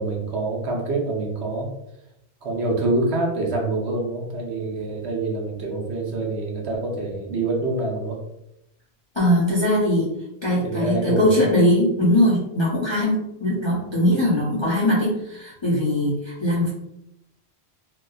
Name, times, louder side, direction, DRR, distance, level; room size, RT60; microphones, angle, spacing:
voice 1, 0.0-1.7 2.4-8.2 10.6-11.4, right 2 dB, 75° right, -1 dB, 1.0 m, -26 dB
voice 2, 9.2-10.1 10.4-16.7, left 1 dB, 35° left, -7 dB, 0.5 m, -21 dB
2.8 x 2.2 x 2.3 m, 0.83 s
omnidirectional pair, 1.1 m